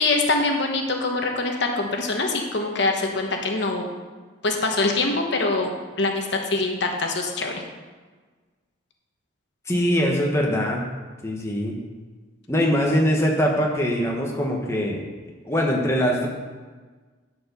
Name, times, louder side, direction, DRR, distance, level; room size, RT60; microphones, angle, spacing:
voice 1, 0.0-3.9 4.4-5.7 6.0-7.6, left 3 dB, 55° left, 2 dB, 1.1 m, -24 dB
voice 2, 9.7-10.9 11.2-11.8 12.5-15.0 15.4-16.3, equal, 15° left, -1 dB, 1.1 m, -22 dB
11.0 x 4.7 x 6.7 m, 1.4 s
head